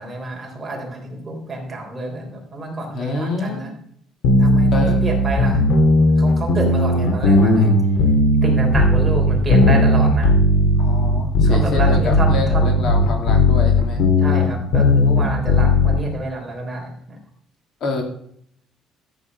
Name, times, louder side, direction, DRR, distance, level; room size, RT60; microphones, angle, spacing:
voice 1, 0.0-3.7 4.4-5.6 6.2-7.7 8.4-10.3 11.4-12.7 13.7-13.8 14.2-17.2, right 2 dB, 15° right, 0 dB, 3.6 m, -28 dB
voice 2, 2.9-3.7 4.7-5.0 10.8-14.0 17.8-18.0, left 3 dB, 45° left, 3 dB, 2.8 m, -27 dB
sound 1, 4.2-16.0, left 1 dB, 75° left, 2.7 m, -16 dB
14.0 x 8.9 x 5.4 m, 0.64 s
cardioid pair, 170°, 0 cm